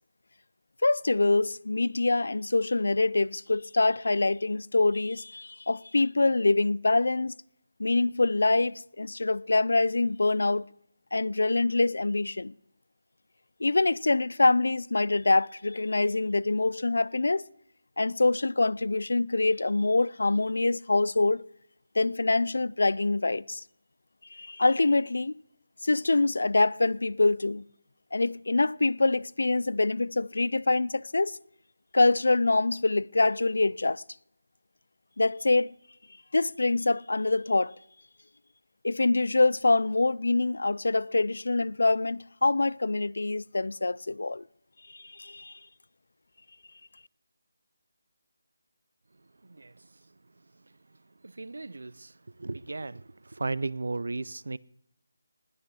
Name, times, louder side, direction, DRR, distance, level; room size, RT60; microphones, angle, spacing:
voice 1, 0.8-7.3 7.8-10.6 11.1-12.5 13.6-17.4 18.0-21.5 22.0-23.6 24.3-25.3 25.8-27.6 28.1-31.4 31.9-34.0 35.2-35.7 36.3-37.8 38.8-44.4 44.9-45.5, left 2 dB, 65° left, 0.4 m, -25 dB
voice 2, 51.2-52.1 52.4-54.6, right 3 dB, 60° right, 0.4 m, -35 dB
19.5 x 6.6 x 6.2 m
figure-of-eight pair, 180°, 0 cm